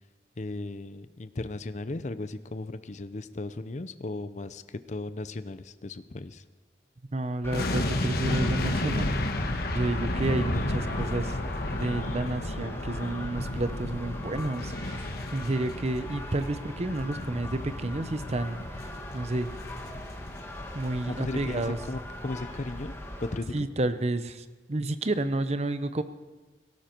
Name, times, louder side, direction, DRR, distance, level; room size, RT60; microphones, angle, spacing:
voice 1, 0.4-6.4 21.1-22.9 23.2-23.7, left 2 dB, 40° left, 13 dB, 0.6 m, -36 dB
voice 2, 7.1-9.2 9.7-11.4 11.7-19.5 20.7-21.8 23.5-26.0, right 2 dB, 40° right, 11 dB, 0.7 m, -30 dB
sound 1, 7.4-23.4, left 1 dB, 15° left, 1.8 m, -40 dB
sound 2, 7.5-20.7 20.9-21.1, left 1 dB, 60° left, 1.3 m, -33 dB
18.0 x 17.5 x 4.5 m, 1.3 s
head